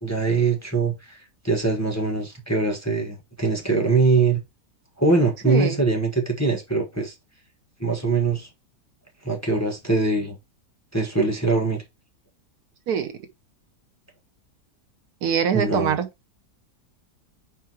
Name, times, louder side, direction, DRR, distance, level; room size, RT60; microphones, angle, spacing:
voice 1, 0.0-4.4 5.0-7.1 7.8-8.5 9.2-10.4 10.9-11.8 15.5-16.0, right 3 dB, 10° left, 1.0 m, -22 dB
voice 2, 5.5-5.8 12.9-13.1 15.2-16.1, right 8 dB, 70° right, 1.2 m, -23 dB
4.6 x 4.4 x 4.6 m
omnidirectional pair, 1.8 m